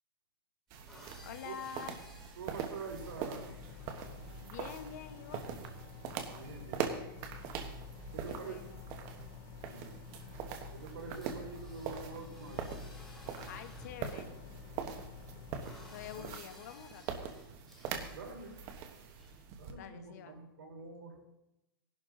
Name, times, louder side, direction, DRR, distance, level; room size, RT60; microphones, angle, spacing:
sound 1, 0.7-4.5 4.9-5.1 5.4-5.7 6.8-6.9 7.8-7.9 8.2-8.3 9.6-9.7 9.9-14.2 14.8-17.9 18.3-19.4, left 1 dB, 5° left, 2.3 m, -59 dB
sound 2, 0.7-19.7, right 7 dB, 25° right, 1.2 m, -43 dB
voice 1, 1.2-2.0 4.4-5.4 8.2-8.9 13.5-14.4 15.9-17.2 19.7-20.4, left 8 dB, 45° left, 9 dB, 1.1 m, -47 dB
voice 2, 2.4-3.5 6.3-6.9 8.1-8.6 9.7-10.0 10.7-12.6 16.1-16.3 18.1-18.6 19.6-21.2, right 4 dB, 70° right, -1 dB, 4.8 m, -46 dB
sound 3, 3.0-16.4, left 8 dB, 25° left, 0.4 m, -51 dB
17.0 x 11.5 x 3.8 m, 0.88 s
hypercardioid pair, 170°, 12 cm